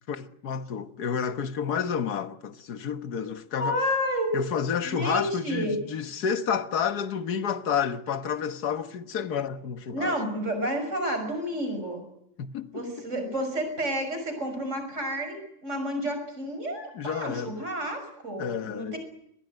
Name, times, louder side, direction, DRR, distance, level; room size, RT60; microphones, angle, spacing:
voice 1, 0.1-3.8 4.3-10.2 12.4-12.9 17.0-17.6 18.4-19.0, left 7 dB, 55° left, 1.7 m, -30 dB
voice 2, 3.6-4.4 4.8-5.8 9.9-12.0 12.7-19.0, equal, 35° right, 6.8 m, -30 dB
24.5 x 20.0 x 9.3 m
omnidirectional pair, 2.2 m